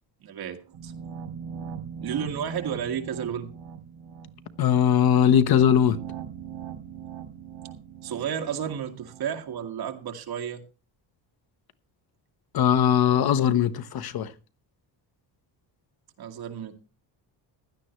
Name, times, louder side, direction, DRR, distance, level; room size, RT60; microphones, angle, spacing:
voice 1, 0.2-0.9 2.0-3.5 8.0-10.6 16.2-16.7, right 8 dB, 55° right, 2.0 m, -32 dB
sound 1, 0.7-9.7, right 7 dB, 80° right, 2.5 m, -41 dB
voice 2, 4.6-6.0 12.5-14.3, left 9 dB, 50° left, 1.0 m, -20 dB
16.0 x 11.5 x 3.1 m
cardioid pair, 175°, 46 cm